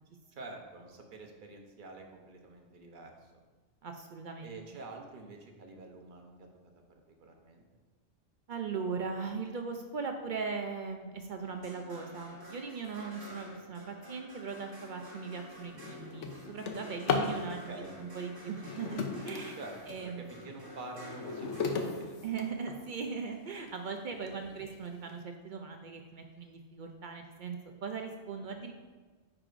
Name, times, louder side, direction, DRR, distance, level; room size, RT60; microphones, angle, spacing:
voice 1, 0.3-3.3 4.4-6.5 6.9-7.6 13.5-13.6 17.5-17.9 19.6-22.2 24.4-24.7, right 2 dB, 45° right, 2 dB, 0.9 m, -47 dB
voice 2, 3.8-4.6 8.5-19.6 19.9-20.3 22.2-28.7, right 5 dB, 60° right, 4 dB, 0.5 m, -39 dB
sound 1, 11.4-23.8 25.4-25.5, left 1 dB, 20° right, 1.2 m, -51 dB
Drawer open or close, 14.9-15.0 15.4-17.4 18.5-20.1 20.6-23.0 23.7-23.8 24.3-24.4 24.7-25.1, left 5 dB, 75° left, 1.0 m, -36 dB
9.6 x 4.8 x 2.5 m, 1.4 s
omnidirectional pair, 1.3 m